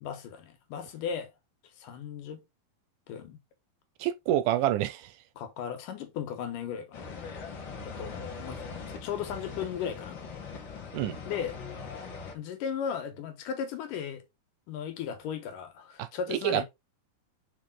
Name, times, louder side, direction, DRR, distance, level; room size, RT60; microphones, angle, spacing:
voice 1, 0.0-1.3 1.8-2.4 3.1-3.4 5.4-7.1 7.8-8.7 9.0-10.2 11.3-11.6 12.3-14.2 14.7-16.6, left 7 dB, 75° left, 2.7 m, -36 dB
voice 2, 4.0-5.1 10.9-11.2 16.0-16.6, right 13 dB, 80° right, 2.0 m, -28 dB
sound 1, 6.9-12.3, left 5 dB, 55° left, 1.4 m, -41 dB
5.3 x 4.8 x 3.7 m
omnidirectional pair, 3.9 m